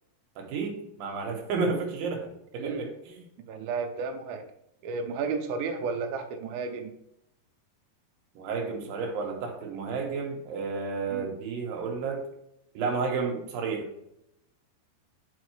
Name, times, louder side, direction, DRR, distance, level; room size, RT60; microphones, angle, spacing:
voice 1, 0.4-3.2 8.4-12.2 12.7-13.9, right 4 dB, 70° right, 2 dB, 2.5 m, -31 dB
voice 2, 2.6-2.9 3.5-4.5 4.8-6.9 11.1-11.3, right 4 dB, 85° right, 4 dB, 2.0 m, -32 dB
8.4 x 5.0 x 3.1 m, 0.81 s
omnidirectional pair, 4.9 m